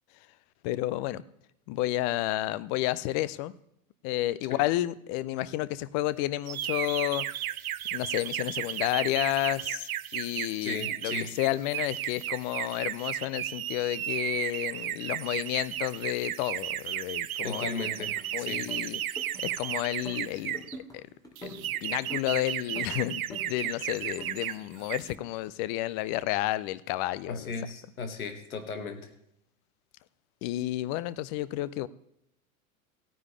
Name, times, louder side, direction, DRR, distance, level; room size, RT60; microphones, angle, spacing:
voice 1, 0.6-1.2 1.7-3.5 4.0-7.3 7.9-17.7 18.3-19.0 19.4-20.6 20.9-21.1 21.4-27.5 30.4-31.9, left 15 dB, 30° left, 17 dB, 0.4 m, -31 dB
sound 1, 6.5-20.8 21.4-24.6 24.8-25.1, right 12 dB, 75° right, 0.6 m, -34 dB
voice 2, 10.6-11.3 17.4-18.6 27.3-29.1, left 5 dB, 75° left, 7 dB, 1.8 m, -36 dB
sound 2, 17.8-18.2 18.5-19.6 19.9-21.0 21.2-22.3 22.8-23.8 24.0-25.2, right 1 dB, 10° left, 2.5 m, -46 dB
16.5 x 9.6 x 3.2 m, 0.76 s
figure-of-eight pair, 90°, 43 cm